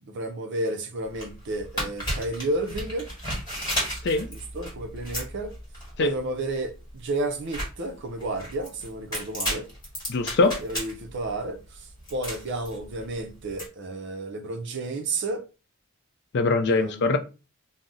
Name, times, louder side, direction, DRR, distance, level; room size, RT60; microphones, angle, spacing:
voice 1, 0.0-3.1 4.3-5.5 6.0-9.7 10.6-11.6 12.1-15.4 16.7-17.2, right 2 dB, 55° right, 0.5 m, -31 dB
sound 1, 1.0-13.7, equal, 20° left, 1.4 m, -34 dB
voice 2, 10.1-10.6 16.3-17.2, left 3 dB, 50° left, 0.4 m, -22 dB
2.6 x 2.0 x 3.6 m
head